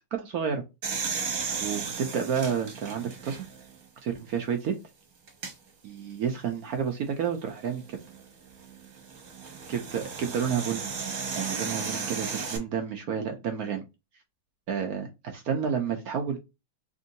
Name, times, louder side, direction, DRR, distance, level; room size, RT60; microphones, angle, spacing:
voice 1, 0.1-0.6 1.0-1.3 1.6-3.4 4.0-4.8 5.8-8.0 9.7-10.9 11.3-13.8 14.7-16.4, right 7 dB, 75° right, 4 dB, 0.8 m, -30 dB
sound 1, 0.8-3.7 4.3-4.4 5.3-5.5 7.7-12.6, right 5 dB, 50° right, 1.3 m, -35 dB
3.6 x 2.6 x 3.9 m, 0.25 s
omnidirectional pair, 2.3 m